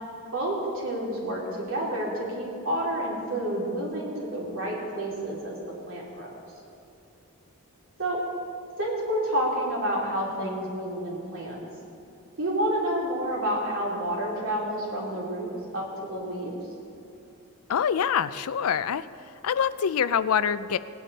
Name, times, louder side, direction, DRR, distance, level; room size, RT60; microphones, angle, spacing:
voice 1, 0.3-5.6 5.9-6.3 8.0-8.2 8.8-11.6 12.4-15.5 15.7-16.5, right 1 dB, 65° right, -3 dB, 3.1 m, -29 dB
voice 2, 17.7-19.1 19.4-20.8, left 7 dB, 70° left, 15 dB, 0.4 m, -25 dB
18.5 x 10.0 x 4.1 m, 2.8 s
head